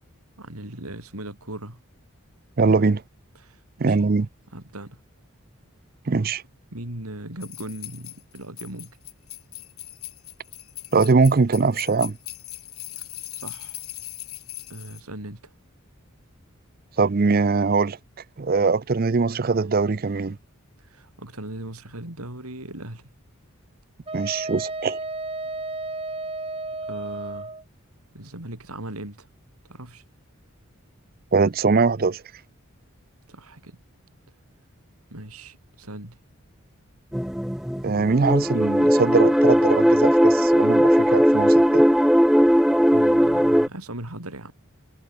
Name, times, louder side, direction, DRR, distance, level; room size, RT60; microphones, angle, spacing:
voice 1, 0.4-1.8 2.6-2.9 3.4-4.1 4.5-5.0 6.7-9.0 13.4-13.8 14.7-15.5 20.8-23.1 26.9-27.5 28.1-29.3 29.7-30.0 33.3-33.8 35.1-36.2 42.9-44.5, right 1 dB, 90° right, 4.9 m, -38 dB
voice 2, 2.6-3.0 3.8-4.3 6.1-6.4 10.9-12.2 17.0-18.0 18.4-20.4 24.1-25.0 31.3-32.2 37.8-41.8, right 4 dB, 40° right, 0.5 m, -21 dB
sound 1, 7.4-15.0, left 17 dB, 80° left, 2.8 m, -39 dB
Wind instrument woodwind instrument, 24.1-27.6, right 2 dB, 25° right, 6.4 m, -32 dB
sound 2, 37.1-43.7, equal, ahead, 1.0 m, -18 dB
head